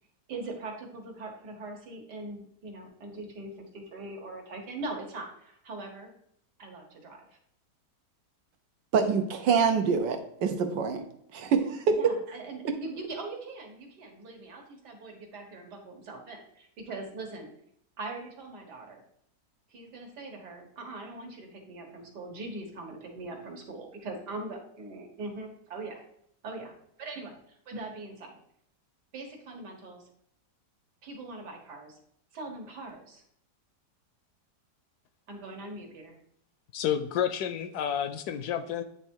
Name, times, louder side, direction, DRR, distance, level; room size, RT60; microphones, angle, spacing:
voice 1, 0.3-6.1 6.6-7.3 11.9-17.5 18.0-19.0 19.7-26.0 26.4-28.4 29.1-30.1 31.0-32.0 32.3-33.2 35.3-36.2, right 2 dB, 70° right, 1 dB, 1.9 m, -41 dB
voice 2, 8.9-11.0 11.3-12.0, right 5 dB, 85° right, 6 dB, 1.5 m, -25 dB
voice 3, 36.7-38.8, left 9 dB, 70° left, 10 dB, 1.0 m, -30 dB
9.3 x 3.5 x 4.5 m, 0.70 s
omnidirectional pair, 1.9 m